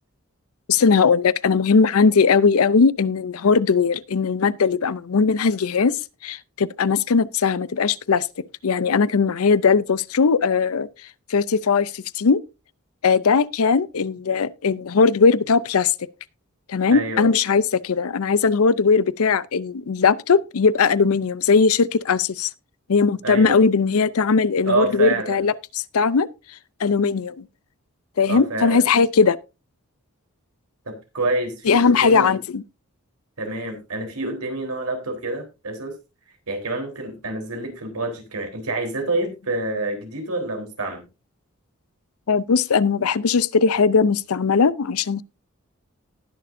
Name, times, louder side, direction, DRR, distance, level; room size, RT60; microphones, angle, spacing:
voice 1, 0.7-5.9 6.2-8.3 8.6-10.9 11.3-12.4 13.0-15.9 16.7-22.5 22.9-26.3 26.8-27.4 28.2-29.4 31.7-32.6 42.3-45.2, left 5 dB, 75° left, 0.5 m, -19 dB
voice 2, 16.9-17.3 23.2-23.6 24.6-25.4 28.3-28.8 30.9-32.4 33.4-35.9 36.5-41.1, right 2 dB, 85° right, 3.7 m, -27 dB
19.5 x 6.8 x 2.6 m
head